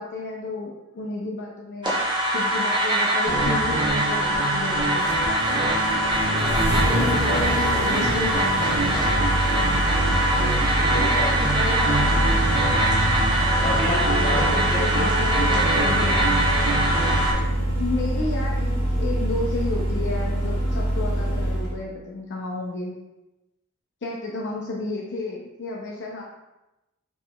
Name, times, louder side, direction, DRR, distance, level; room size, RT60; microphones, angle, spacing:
voice 1, 0.0-2.0 2.3-5.1 6.8-8.8 11.6-12.4 14.3-16.3 17.8-23.0 24.0-26.2, left 3 dB, 55° left, -2 dB, 0.5 m, -32 dB
sound 1, 1.8-17.3, right 1 dB, 20° right, 0.8 m, -23 dB
sound 2, 3.3-17.4, right 1 dB, 70° right, 1.1 m, -29 dB
Engine starting, 3.4-21.8, right 1 dB, 50° right, 1.3 m, -26 dB
voice 2, 6.2-8.0 10.4-11.6 13.6-16.2, left 1 dB, 25° left, -6 dB, 1.0 m, -32 dB
5.4 x 3.0 x 2.2 m, 0.97 s
head